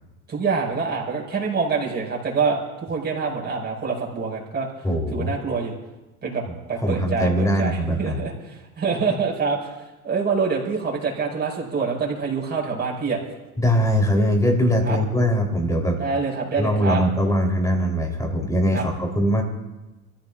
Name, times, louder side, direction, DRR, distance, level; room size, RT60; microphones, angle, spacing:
voice 1, 0.3-4.7 5.1-5.7 6.2-6.4 6.7-9.7 10.0-13.2 14.8-15.0 16.0-17.0 18.7-18.8, right 5 dB, 25° right, -3 dB, 5.5 m, -25 dB
voice 2, 4.8-5.3 6.8-8.2 13.6-16.0 16.6-19.4, equal, 10° left, 1 dB, 3.5 m, -21 dB
28.0 x 15.0 x 2.5 m, 1.1 s
hypercardioid pair, 100°, 42 cm